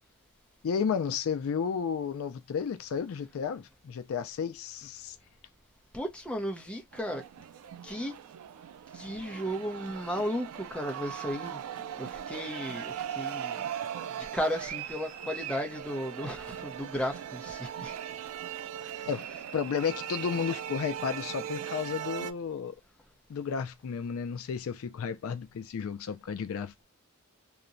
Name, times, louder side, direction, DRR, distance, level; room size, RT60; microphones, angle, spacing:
voice 1, 0.6-5.2 19.1-19.3 19.5-22.7 23.3-26.8, left 6 dB, 70° left, 0.4 m, -32 dB
voice 2, 5.9-7.3 7.8-8.2 8.9-11.6 12.0-13.7 14.2-17.9 18.8-19.1, equal, 5° left, 0.6 m, -35 dB
sound 1, 6.9-22.3, right 9 dB, 85° right, 0.3 m, -39 dB
2.7 x 2.1 x 2.5 m
head